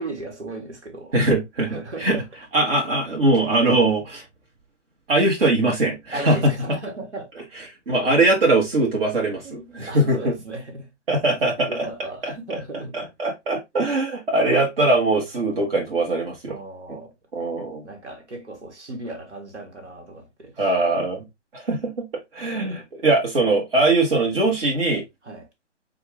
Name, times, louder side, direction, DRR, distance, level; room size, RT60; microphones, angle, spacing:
voice 1, 0.0-1.2 1.6-2.3 2.6-2.7 6.1-7.3 9.4-10.9 11.6-13.0 16.5-17.1 17.8-20.7 25.2-25.5, right 2 dB, 70° right, 1.9 m, -36 dB
voice 2, 1.1-1.7 2.0-2.2 2.5-4.2 5.1-6.5 7.9-10.3 11.1-11.9 12.2-12.6 12.9-16.6 17.3-17.8 20.6-21.2 21.5-22.1 22.3-25.0, right 2 dB, 50° right, 1.7 m, -21 dB
5.9 x 2.5 x 3.2 m
figure-of-eight pair, 130°, 36 cm